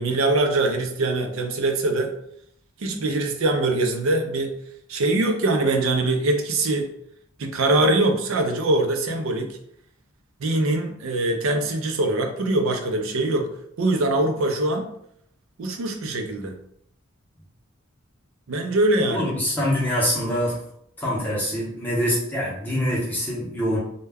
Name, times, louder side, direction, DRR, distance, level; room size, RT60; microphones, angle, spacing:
voice 1, 0.0-2.1 2.8-4.5 4.9-6.9 7.4-9.6 10.4-13.5 13.8-14.9 15.6-16.6 18.5-19.4, right 2 dB, 70° right, 4 dB, 0.4 m, -23 dB
voice 2, 19.1-20.6 21.0-23.8, equal, 10° left, -5 dB, 0.7 m, -24 dB
2.2 x 2.1 x 3.3 m, 0.71 s
head